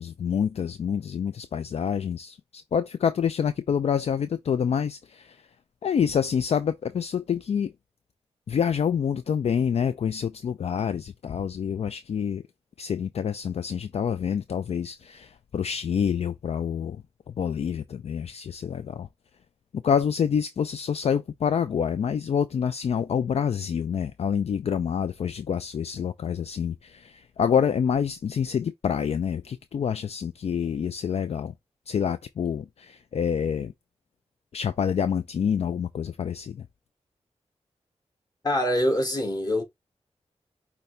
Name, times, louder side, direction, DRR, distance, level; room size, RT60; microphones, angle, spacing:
voice 1, 0.0-5.4 5.8-7.7 8.5-12.4 12.8-17.0 17.4-19.1 19.8-31.5 31.9-33.7 34.5-36.6, left 7 dB, 65° left, 0.4 m, -27 dB
voice 2, 38.4-39.6, left 1 dB, 35° left, 1.8 m, -24 dB
5.6 x 2.9 x 3.3 m
wide cardioid pair, 75°, 12 cm